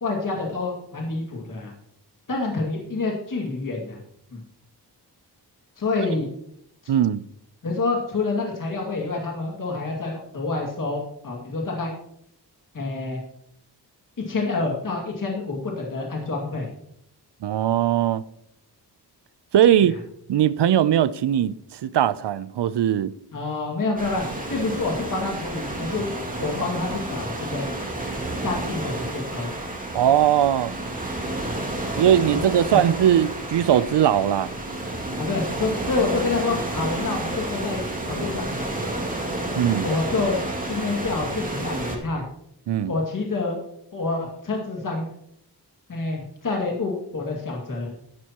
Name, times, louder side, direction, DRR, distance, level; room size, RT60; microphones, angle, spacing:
voice 1, 0.0-1.7 2.3-4.0 4.3-4.4 5.8-6.3 7.6-11.9 12.7-13.2 14.2-16.7 19.8-20.0 23.3-24.2 24.5-26.1 26.4-27.7 28.4-29.5 31.2-31.3 32.3-32.4 32.7-32.8 35.2-38.9 39.8-40.4 40.6-42.2 42.9-43.6 43.9-45.0 45.9-47.9, left 3 dB, 50° left, 2.4 m, -27 dB
voice 2, 6.9-7.2 17.4-18.2 19.5-20.0 20.3-23.1 29.9-30.7 32.0-34.5 39.5-39.9 42.7-42.9, right 10 dB, 80° right, 0.6 m, -20 dB
sound 1, 24.0-42.0, right 2 dB, 20° right, 2.4 m, -30 dB
12.5 x 12.0 x 3.0 m
wide cardioid pair, 150°, 41 cm